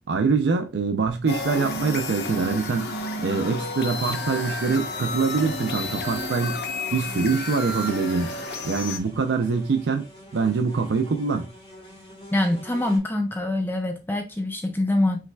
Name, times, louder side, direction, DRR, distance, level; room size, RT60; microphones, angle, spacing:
voice 1, 0.1-2.9 3.2-6.6 6.9-8.3 8.6-10.1 10.3-11.5, right 4 dB, 80° right, 0.5 m, -24 dB
sound 1, 1.3-9.0, left 2 dB, 65° left, 0.7 m, -31 dB
sound 2, 2.3-13.0, equal, 35° left, 1.5 m, -46 dB
voice 2, 12.3-15.3, left 1 dB, 10° left, 0.5 m, -24 dB
5.6 x 3.2 x 2.2 m
head